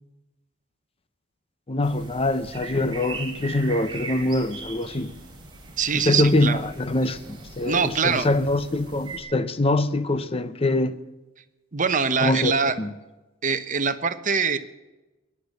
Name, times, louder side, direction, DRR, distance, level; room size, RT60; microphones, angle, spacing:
voice 1, 1.7-5.1 5.9-11.0 12.2-12.9, left 2 dB, 30° left, 0.7 m, -24 dB
sound 1, 1.8-9.2, right 3 dB, 20° right, 3.8 m, -40 dB
voice 2, 5.8-6.6 7.6-8.3 11.7-12.7 13.4-14.6, right 5 dB, 40° right, 1.0 m, -23 dB
21.5 x 10.0 x 6.6 m
head